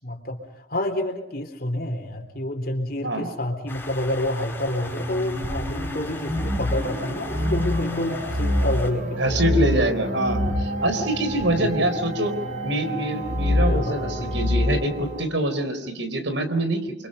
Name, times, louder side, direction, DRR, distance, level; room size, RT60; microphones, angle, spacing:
voice 1, 0.0-10.0 11.6-11.8 13.6-14.5, left 1 dB, 50° left, 4 dB, 4.0 m, -29 dB
sound 1, 3.7-8.9, left 2 dB, 10° left, 5.3 m, -38 dB
sound 2, 4.8-15.2, left 1 dB, 40° right, 5.5 m, -26 dB
voice 2, 9.2-12.3 12.6-16.9, right 1 dB, 75° right, 9 dB, 4.0 m, -25 dB
29.5 x 24.5 x 5.6 m, 0.81 s
head